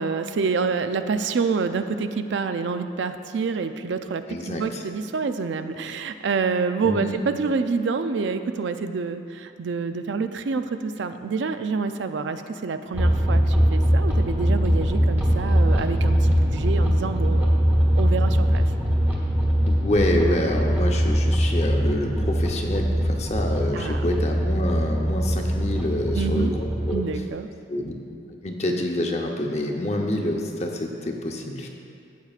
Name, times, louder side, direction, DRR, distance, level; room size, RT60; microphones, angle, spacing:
voice 1, 0.0-18.7 23.7-24.0 26.1-26.5 26.9-27.5, right 4 dB, 80° right, 9 dB, 0.4 m, -27 dB
voice 2, 4.3-4.8 6.8-7.2 19.7-27.0 27.7-27.9 28.4-31.7, left 1 dB, 35° left, 1 dB, 0.8 m, -27 dB
sound 1, 12.9-27.0, equal, 10° right, 1.2 m, -22 dB
14.0 x 8.1 x 2.4 m, 2.4 s
head